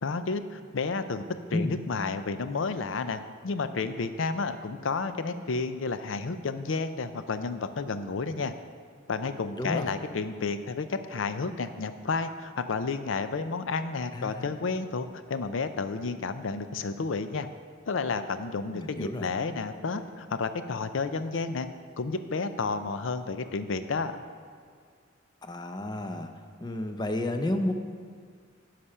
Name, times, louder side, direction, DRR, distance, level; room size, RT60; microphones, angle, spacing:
voice 1, 0.0-1.3 1.5-8.5 9.1-17.5 17.9-21.7 22.0-24.2, left 4 dB, 70° left, 11 dB, 0.5 m, -31 dB
voice 2, 9.6-10.0 14.1-14.5 18.7-19.3 25.4-26.3 26.6-27.7, left 1 dB, 20° left, 6 dB, 0.6 m, -31 dB
9.9 x 5.9 x 5.6 m, 2.1 s
head